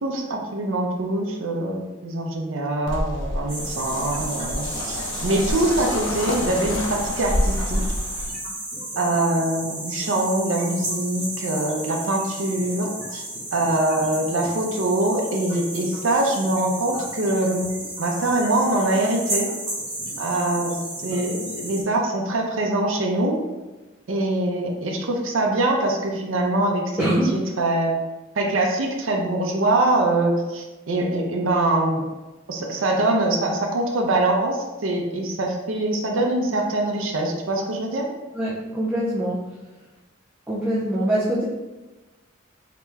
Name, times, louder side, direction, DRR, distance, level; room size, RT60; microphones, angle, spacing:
voice 1, 0.0-7.8 9.0-13.2 13.5-17.7 18.0-19.5 20.2-23.4 24.1-27.9 28.4-32.1 32.5-38.1, right 2 dB, 80° right, 1 dB, 0.6 m, -23 dB
sound 1, 2.9-8.3, left 1 dB, 70° left, 0.6 m, -28 dB
sound 2, 3.5-21.8, right 1 dB, 30° right, 1.3 m, -33 dB
voice 2, 27.0-27.3 38.3-39.4 40.5-41.5, right 1 dB, 10° right, -8 dB, 0.5 m, -23 dB
3.4 x 2.9 x 3.1 m, 1.1 s
head